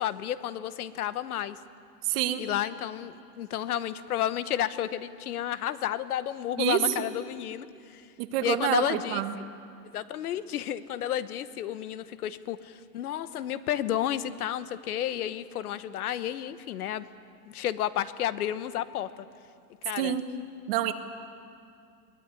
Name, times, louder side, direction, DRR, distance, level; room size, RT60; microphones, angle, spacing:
voice 1, 0.0-1.6 2.4-8.0 8.4-9.2 9.9-17.0 17.5-19.3 19.8-20.2, left 11 dB, 60° left, 14 dB, 1.1 m, -31 dB
voice 2, 2.1-2.4 6.6-6.8 8.2-9.3 20.0-20.2 20.7-20.9, right 12 dB, 35° right, 9 dB, 1.2 m, -27 dB
22.5 x 18.5 x 9.6 m, 2.4 s
supercardioid pair, 165°, 50 cm